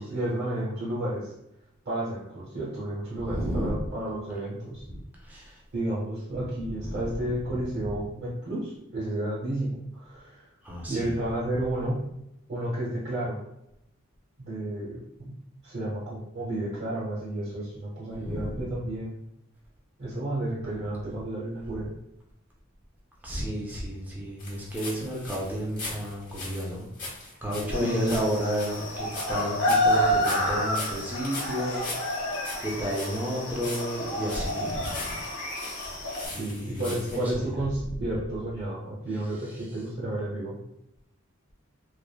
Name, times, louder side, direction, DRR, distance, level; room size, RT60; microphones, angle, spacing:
voice 1, 0.0-1.3 1.8-4.8 5.7-10.5 10.9-12.1 12.5-13.4 14.4-15.4 15.6-19.1 20.0-21.9 27.8-28.2 36.2-40.6, right 1 dB, 55° right, -7 dB, 0.7 m, -31 dB
voice 2, 3.2-3.9 4.9-5.6 6.8-7.3 10.6-11.1 18.2-18.7 23.2-26.9 27.4-35.6 36.2-37.5, equal, 10° right, -4 dB, 0.5 m, -32 dB
sound 1, 24.4-37.3, left 2 dB, 40° left, 1.0 m, -40 dB
sound 2, 27.7-36.3, left 1 dB, 75° left, 1.0 m, -29 dB
3.2 x 2.0 x 2.3 m, 0.83 s
head